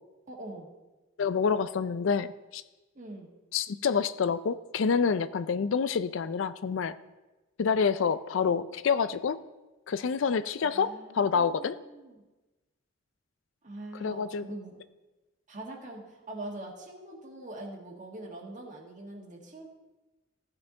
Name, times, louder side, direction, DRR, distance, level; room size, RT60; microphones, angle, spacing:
voice 1, 0.3-0.7 2.9-3.3 10.6-12.2 13.6-14.8 15.5-19.7, right 1 dB, 40° right, 0 dB, 1.6 m, -43 dB
voice 2, 1.2-2.6 3.5-6.9 7.6-9.4 9.9-11.8 14.0-14.5, left 6 dB, 75° left, 13 dB, 0.4 m, -27 dB
14.5 x 5.9 x 3.9 m, 1.1 s
head